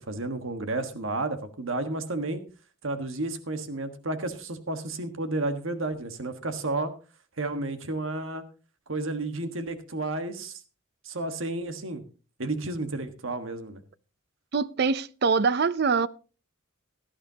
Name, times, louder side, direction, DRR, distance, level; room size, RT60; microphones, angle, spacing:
voice 1, 0.0-2.4 2.8-6.9 7.4-8.4 8.9-10.6 11.0-12.0 12.4-13.8, right 2 dB, 80° right, 1.4 m, -32 dB
voice 2, 14.5-16.1, right 5 dB, 55° right, 0.5 m, -24 dB
17.0 x 12.0 x 2.8 m
head